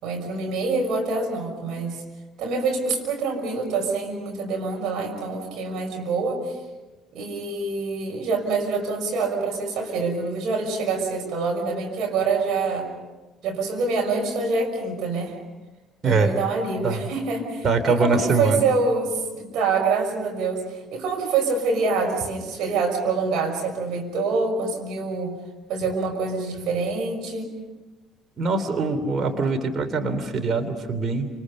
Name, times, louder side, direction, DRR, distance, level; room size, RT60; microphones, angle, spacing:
voice 1, 0.0-2.0 2.4-6.6 7.1-12.9 13.4-15.4 16.0-25.4 25.7-27.6, right 4 dB, 55° right, 1 dB, 5.9 m, -26 dB
voice 2, 16.0-16.3 16.8-17.0 17.6-18.6 28.4-31.3, right 3 dB, 35° right, 6 dB, 3.2 m, -23 dB
28.5 x 28.0 x 5.5 m, 1.2 s
figure-of-eight pair, 50°, 0 cm